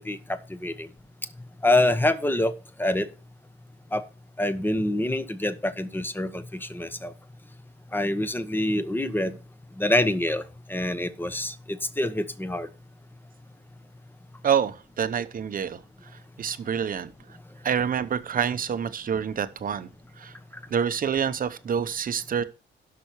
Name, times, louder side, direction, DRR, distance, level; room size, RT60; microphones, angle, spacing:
voice 1, 0.1-0.9 1.6-2.5 2.8-3.1 3.9-4.0 4.4-7.1 7.9-9.3 9.8-10.4 10.7-11.5 12.0-12.7, left 1 dB, 10° left, 1.1 m, -25 dB
voice 2, 14.4-15.8 16.4-17.1 17.6-19.9 20.2-20.3 20.7-22.4, right 7 dB, 45° right, 0.9 m, -27 dB
17.0 x 6.1 x 3.1 m
cardioid pair, 90°, 20 cm